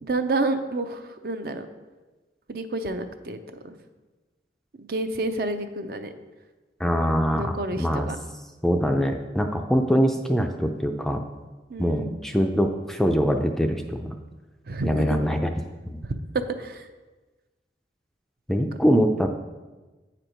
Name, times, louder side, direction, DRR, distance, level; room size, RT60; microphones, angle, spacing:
voice 1, 0.0-1.7 2.5-3.4 3.6-3.8 4.9-6.1 7.4-8.2 11.7-12.2 14.7-15.2 16.6-16.9, right 2 dB, 55° right, 8 dB, 0.5 m, -29 dB
voice 2, 6.8-8.1 8.6-11.2 11.8-14.1 14.8-15.5 15.9-16.0 18.5-19.3, equal, ahead, 4 dB, 0.3 m, -23 dB
8.5 x 4.5 x 5.1 m, 1.2 s
head